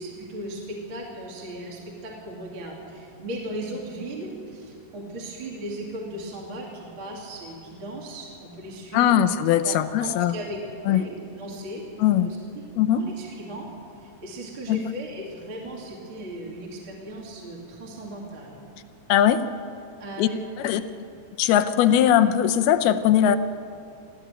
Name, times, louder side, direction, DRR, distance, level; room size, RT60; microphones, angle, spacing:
voice 1, 0.0-9.2 9.6-11.8 12.2-12.4 12.9-13.7 14.0-18.6 20.0-20.4 20.7-20.9, right 1 dB, 35° right, -2 dB, 3.1 m, -37 dB
voice 2, 8.9-10.4 10.9-11.0 12.0-12.3 12.8-13.0 14.7-14.8 19.1-19.4 20.2-20.3 20.6-20.8 21.4-23.4, left 10 dB, 80° left, 10 dB, 2.7 m, -20 dB
25.0 x 15.0 x 9.1 m, 2.5 s
omnidirectional pair, 4.6 m